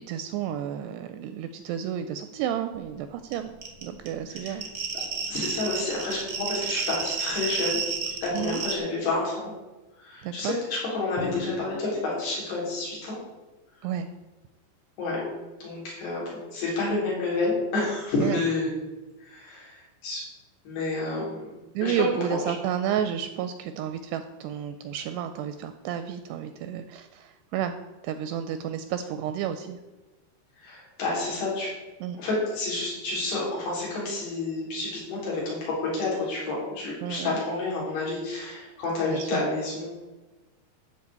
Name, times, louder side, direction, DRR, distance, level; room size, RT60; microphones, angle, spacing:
voice 1, 0.0-3.5 3.8-4.7 8.3-8.6 10.2-10.6 13.8-14.1 18.2-18.4 21.8-27.8 28.0-29.8 32.0-32.2 37.0-37.4 39.0-39.4, right 9 dB, 85° right, 9 dB, 2.5 m, -31 dB
sound 1, 3.3-3.4 3.6-8.7, right 6 dB, 60° right, 1.2 m, -31 dB
voice 2, 5.3-7.8 8.2-9.5 10.0-13.2 15.0-15.2 15.6-16.2 16.5-18.7 19.2-20.2 20.7-21.4 21.8-21.9 30.6-31.7 32.2-39.9, left 3 dB, 60° left, -5 dB, 5.7 m, -29 dB
Drum, 11.2-12.9, left 4 dB, 80° left, 4.1 m, -39 dB
12.0 x 5.1 x 8.2 m, 1.1 s
omnidirectional pair, 5.2 m